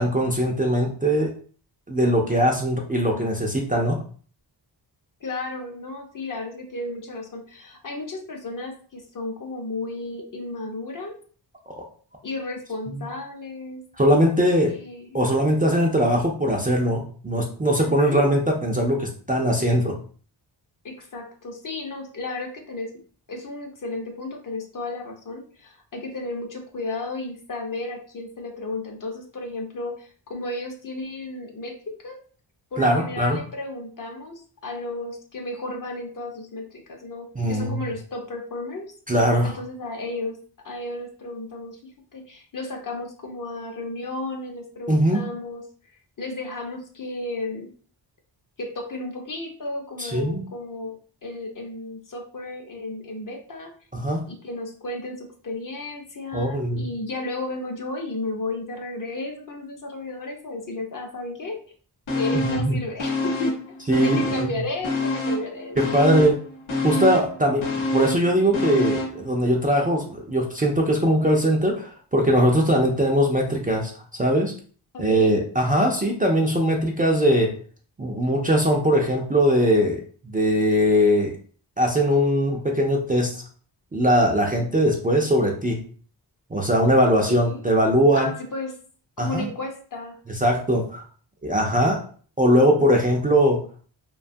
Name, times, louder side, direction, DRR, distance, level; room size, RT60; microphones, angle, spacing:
voice 1, 0.0-1.3 1.9-4.0 14.0-14.8 15.1-20.0 32.8-33.4 37.4-37.9 39.1-39.5 44.9-45.2 50.0-50.4 53.9-54.3 56.3-56.9 62.3-62.8 63.9-64.6 65.8-66.4 66.8-73.9 74.2-74.5 75.0-77.5 78.0-81.3 81.8-83.4 83.9-85.8 86.5-88.3 89.2-89.5 90.3-91.0 91.4-92.0 92.4-93.6, equal, 20° right, 0 dB, 0.4 m, -21 dB
voice 2, 5.2-11.2 12.2-13.8 14.7-15.2 17.7-18.3 20.8-22.9 23.3-32.2 32.7-38.9 39.4-40.4 40.6-45.6 46.2-47.7 48.6-53.7 54.3-61.6 62.1-63.8 64.0-66.3 74.9-75.4 87.3-87.7 88.1-88.7 89.2-90.2 91.7-92.0, left 2 dB, 45° left, 2 dB, 0.7 m, -33 dB
sound 1, 62.1-62.7 63.0-64.6 64.8-69.2 69.6-69.7, left 1 dB, 90° left, 0.9 m, -26 dB
2.7 x 2.3 x 2.5 m, 0.43 s
cardioid pair, 75°, 46 cm